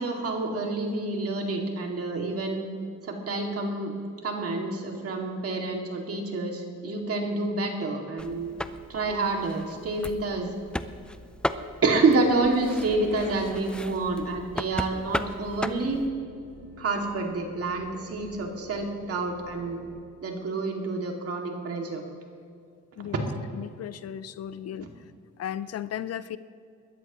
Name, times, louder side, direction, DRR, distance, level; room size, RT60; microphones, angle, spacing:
voice 1, 0.0-2.6 3.0-3.9 4.2-8.5 8.9-10.5 11.8-16.0 16.8-19.8 20.2-22.0 23.0-23.1, right 3 dB, 50° right, 2 dB, 2.3 m, -28 dB
sound 1, 8.2-16.1, left 1 dB, 5° left, 0.5 m, -36 dB
sound 2, 12.4-20.0, left 3 dB, 85° left, 4.1 m, -51 dB
voice 2, 23.5-24.9 25.4-26.4, left 10 dB, 55° left, 15 dB, 0.5 m, -35 dB
21.0 x 13.0 x 3.0 m, 2.4 s
cardioid pair, 90°, 30 cm